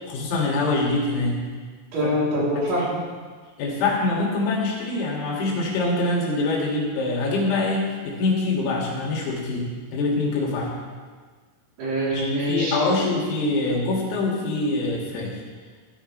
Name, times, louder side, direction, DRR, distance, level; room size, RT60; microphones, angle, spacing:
voice 1, 0.1-1.4 2.0-2.2 2.6-2.7 3.6-9.7 9.9-10.7 12.1-15.4, left 2 dB, 85° left, -3 dB, 5.3 m, -24 dB
voice 2, 1.9-3.0 11.8-12.9, equal, 65° right, -7 dB, 6.0 m, -24 dB
16.0 x 13.5 x 3.4 m, 1.5 s
omnidirectional pair, 6.0 m